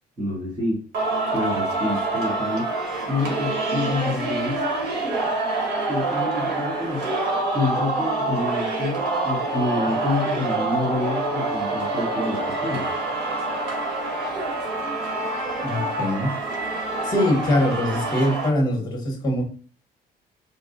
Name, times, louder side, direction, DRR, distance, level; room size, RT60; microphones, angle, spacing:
voice 1, 0.2-0.8 1.3-2.7 3.1-4.6 5.9-7.2 7.5-12.9, left 2 dB, 30° right, -8 dB, 1.3 m, -28 dB
Singing, 0.9-18.5, right 2 dB, 85° right, 1.3 m, -26 dB
voice 2, 15.6-16.3 17.0-19.5, left 1 dB, 25° left, 1 dB, 1.1 m, -23 dB
4.1 x 2.5 x 2.5 m, 0.38 s
cardioid pair, 150°, 16 cm